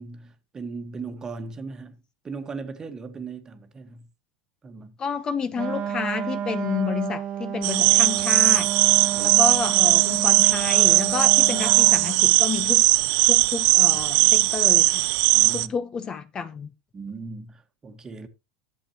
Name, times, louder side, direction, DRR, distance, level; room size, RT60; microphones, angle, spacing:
voice 1, 0.0-2.0 2.2-4.1 4.6-5.0 9.1-9.4 13.9-14.5 15.3-15.7 16.9-18.3, right 4 dB, 25° right, 1.4 m, -38 dB
voice 2, 5.0-8.7 9.2-12.9 13.2-15.1 15.5-16.7, left 6 dB, 30° left, 0.8 m, -30 dB
Wind instrument woodwind instrument, 5.5-12.2, right 9 dB, 40° right, 1.4 m, -31 dB
sound 1, 7.6-15.7, right 23 dB, 60° right, 0.5 m, -19 dB
11.5 x 7.7 x 2.9 m
supercardioid pair, 105°, 3 cm